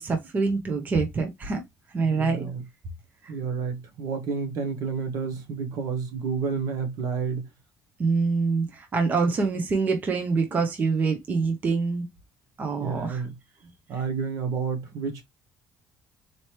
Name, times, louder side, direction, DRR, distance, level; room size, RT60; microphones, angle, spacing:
voice 1, 0.0-1.6 1.9-2.5 8.0-12.0 12.6-13.2, right 4 dB, 25° right, 0.7 m, -25 dB
voice 2, 2.0-2.7 3.3-7.5 12.8-13.4 13.9-15.2, right 5 dB, 60° right, 1.0 m, -30 dB
4.2 x 3.0 x 3.1 m
cardioid pair, 180°, 7 cm